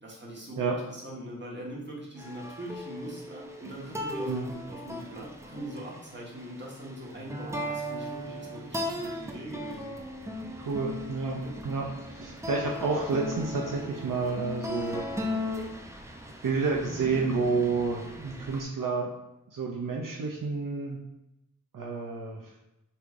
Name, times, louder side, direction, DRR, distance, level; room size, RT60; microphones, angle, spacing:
voice 1, 0.0-10.0 11.3-11.5, right 1 dB, 35° right, -4 dB, 1.3 m, -41 dB
sound 1, 2.2-18.6, left 1 dB, 10° right, 0.5 m, -38 dB
voice 2, 10.6-15.0 16.4-19.1 19.5-21.0 21.7-22.5, right 4 dB, 75° right, -2 dB, 0.6 m, -30 dB
5.5 x 3.2 x 2.5 m, 0.90 s
wide cardioid pair, 55°, 33 cm